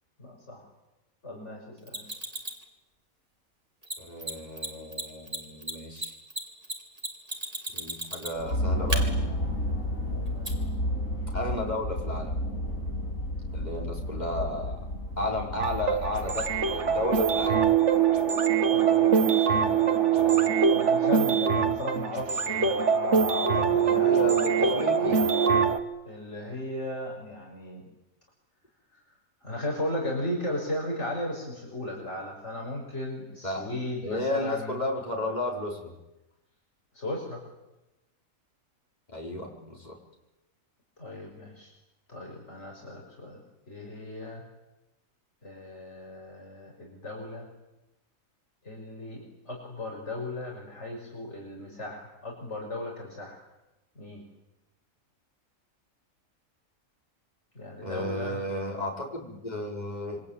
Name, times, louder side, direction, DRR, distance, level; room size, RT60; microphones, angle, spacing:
voice 1, 0.2-0.7 1.2-2.1 10.3-10.6 18.7-24.3 26.1-27.8 29.4-34.8 36.9-37.4 41.0-41.7 42.1-43.4 43.7-44.4 45.4-47.5 48.6-53.4 54.0-54.3 57.5-58.4, left 1 dB, 55° left, -1 dB, 6.0 m, -36 dB
Mechanisms, 1.9-2.6 3.8-3.9 4.2-4.3 4.6-4.7 4.9-8.5 8.9-9.0 10.4-10.5, right 1 dB, 25° right, 3.6 m, -33 dB
voice 2, 4.0-6.1 7.7-9.1 11.3-12.3 13.5-14.8 15.2-17.6 23.8-25.3 33.4-33.7 34.0-36.0 39.1-40.0 57.8-60.2, left 1 dB, 30° left, -1 dB, 5.4 m, -33 dB
sound 1, 8.3-18.0, equal, 75° left, 6.9 m, -31 dB
sound 2, 15.6-25.8, right 7 dB, 55° right, 1.9 m, -23 dB
27.5 x 24.0 x 9.0 m, 0.98 s
omnidirectional pair, 1.4 m